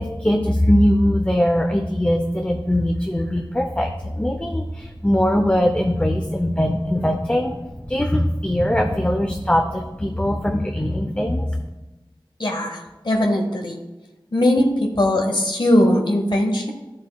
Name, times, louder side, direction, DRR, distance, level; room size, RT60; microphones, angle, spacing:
voice 1, 0.0-11.5, equal, 15° left, 4 dB, 0.6 m, -21 dB
voice 2, 12.4-13.8 14.3-16.7, left 1 dB, 60° left, 2 dB, 1.0 m, -20 dB
12.0 x 7.3 x 2.3 m, 1.1 s
wide cardioid pair, 55°, 9 cm